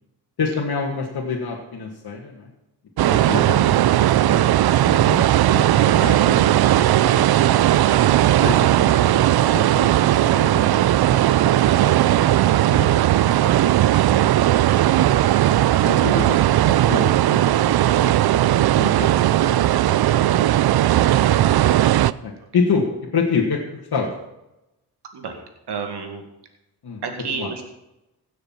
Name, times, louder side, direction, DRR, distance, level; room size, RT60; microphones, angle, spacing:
voice 1, 0.4-2.5 3.1-3.9 4.2-4.5 4.8-7.3 8.4-12.9 13.4-13.8 14.1-14.3 15.8-18.5 18.8-19.1 19.4-20.4 22.2-22.9 23.1-23.6 23.9-24.1 26.8-27.0 27.3-27.5, left 5 dB, 65° left, -2 dB, 1.8 m, -28 dB
sound 1, 3.0-22.1, right 13 dB, 70° right, 0.5 m, -17 dB
voice 2, 25.1-26.3 27.0-27.6, right 5 dB, 85° right, 4 dB, 2.2 m, -31 dB
16.0 x 6.6 x 5.8 m, 0.92 s
cardioid pair, 75°, 39 cm